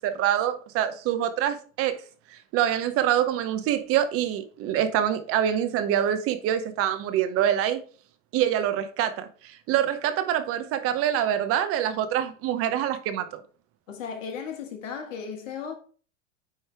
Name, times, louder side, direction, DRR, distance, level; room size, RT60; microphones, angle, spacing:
voice 1, 0.0-2.0 2.3-7.8 8.3-13.4, right 10 dB, 35° right, 0.7 m, -25 dB
voice 2, 13.9-15.7, left 6 dB, 75° left, 1.8 m, -35 dB
9.0 x 3.2 x 3.4 m
hypercardioid pair, 115°, 39 cm